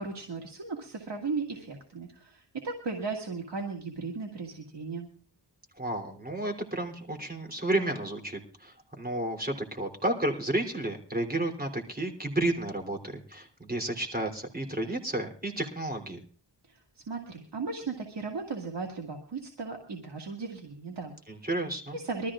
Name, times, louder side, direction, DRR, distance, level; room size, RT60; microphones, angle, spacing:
voice 1, 0.0-5.1 16.7-21.2 21.9-22.3, right 4 dB, 75° right, 1 dB, 2.2 m, -36 dB
voice 2, 5.8-16.2 21.3-22.0, right 1 dB, 20° right, 3 dB, 3.3 m, -32 dB
23.5 x 13.5 x 2.5 m, 0.43 s
cardioid pair, 45°, 42 cm